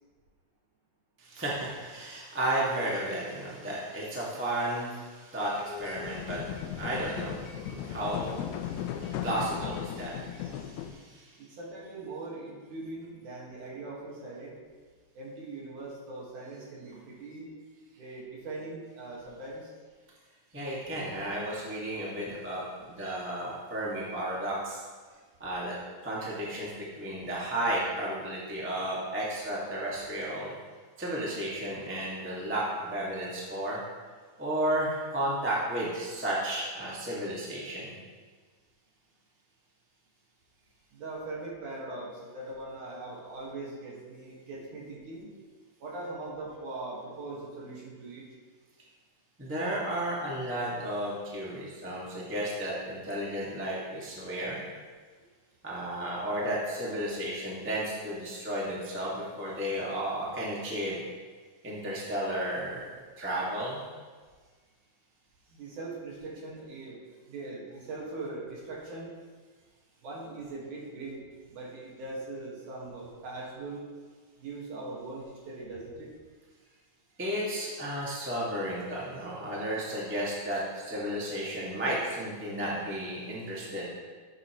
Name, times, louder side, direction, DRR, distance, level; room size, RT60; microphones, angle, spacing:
voice 1, 1.2-11.4 20.5-24.8 25.4-25.7 26.0-30.5 31.0-33.8 34.4-37.9 49.4-54.6 55.6-61.0 61.6-62.9 63.2-63.8 77.2-83.9, right 1 dB, 10° right, -6 dB, 0.6 m, -33 dB
sound 1, 5.7-10.9, left 9 dB, 80° left, 2.5 m, -37 dB
voice 2, 11.4-14.6 15.1-17.5 18.0-19.7 40.9-45.3 45.8-48.3 65.5-69.1 70.0-73.8 74.4-76.1, right 2 dB, 60° right, -4 dB, 3.1 m, -41 dB
14.0 x 8.1 x 3.2 m, 1.5 s
omnidirectional pair, 4.4 m